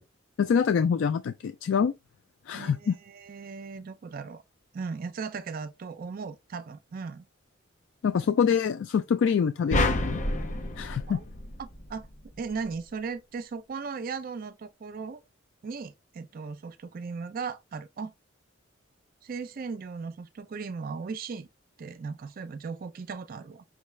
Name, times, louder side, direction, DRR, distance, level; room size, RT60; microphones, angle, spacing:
voice 1, 0.4-1.9 2.5-3.0 8.0-10.2 10.8-11.2, left 6 dB, 65° left, 0.3 m, -25 dB
voice 2, 2.5-4.4 4.7-7.3 11.1-11.2 11.6-12.1 12.4-15.2 15.6-18.1 19.2-21.5 21.8-23.6, right 5 dB, 45° right, 0.4 m, -37 dB
sound 1, 9.7-12.1, left 1 dB, 40° left, 0.7 m, -29 dB
5.3 x 2.3 x 3.1 m
head